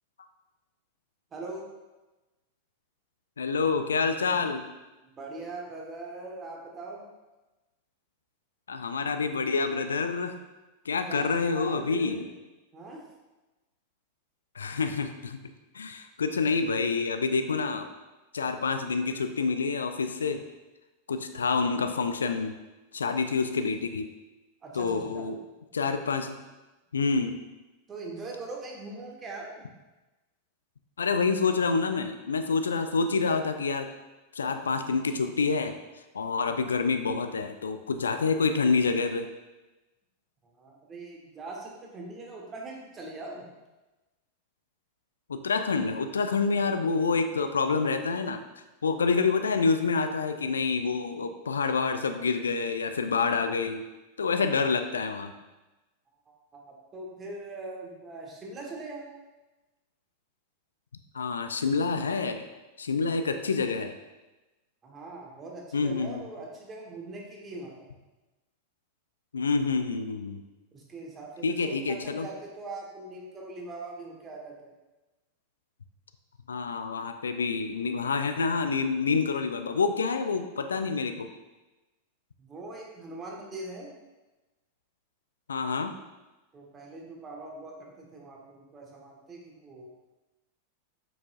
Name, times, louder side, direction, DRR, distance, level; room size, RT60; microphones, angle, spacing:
voice 1, 1.3-1.6 5.0-7.0 11.1-12.3 12.7-13.0 24.6-25.3 27.9-29.6 40.5-43.4 56.5-59.1 64.8-67.7 70.7-74.5 82.4-83.9 86.5-89.9, right 2 dB, 20° right, -1 dB, 1.3 m, -41 dB
voice 2, 3.4-4.6 8.7-10.4 10.9-12.3 14.6-15.4 15.7-17.9 18.3-20.4 21.1-22.5 22.9-24.1 24.7-25.4 25.7-26.4 26.9-27.4 31.0-33.9 34.3-35.7 36.1-39.3 45.3-48.4 48.8-53.8 54.2-55.3 61.1-62.5 62.8-63.9 65.7-66.2 69.3-70.4 71.4-72.3 76.5-81.3 85.5-85.9, left 4 dB, 70° left, 8 dB, 0.3 m, -27 dB
7.0 x 6.0 x 2.5 m, 1.1 s
figure-of-eight pair, 90°, 0 cm